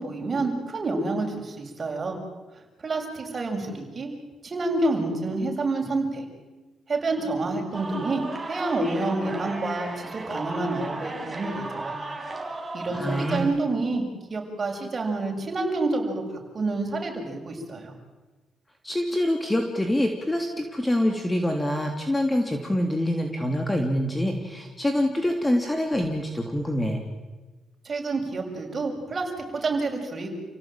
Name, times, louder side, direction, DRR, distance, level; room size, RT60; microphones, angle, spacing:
voice 1, 0.0-2.2 2.8-4.1 4.4-6.3 6.9-8.2 8.5-12.0 12.7-14.0 14.3-16.2 16.5-17.9 27.9-30.3, right 2 dB, 35° right, 2 dB, 7.1 m, -28 dB
sound 1, 7.7-13.4, right 2 dB, 20° right, 5.6 m, -35 dB
voice 2, 12.9-13.5 18.8-27.0, left 1 dB, 15° left, 4 dB, 3.2 m, -25 dB
29.5 x 17.0 x 9.2 m, 1.2 s
cardioid pair, 90°, 0 cm